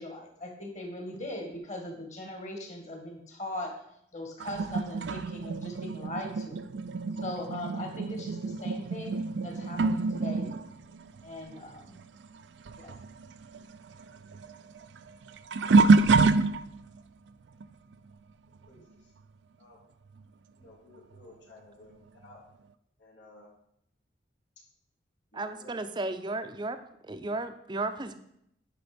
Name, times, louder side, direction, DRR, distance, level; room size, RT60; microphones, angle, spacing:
voice 1, 0.0-3.8 4.1-6.6 7.2-10.5 11.2-12.0 12.8-12.9, left 1 dB, 40° left, 3 dB, 2.0 m, -40 dB
sound 1, 4.4-12.4 12.6-17.0 17.6-17.9 20.2-20.3 21.1-21.2, right 3 dB, 80° right, 0.4 m, -27 dB
voice 2, 20.6-21.9 22.2-22.4 23.0-23.5 25.3-25.7, left 2 dB, 85° left, -4 dB, 3.2 m, -54 dB
voice 3, 25.3-26.8 27.0-28.1, right 2 dB, 25° right, 9 dB, 0.6 m, -34 dB
10.0 x 5.4 x 5.1 m, 0.73 s
head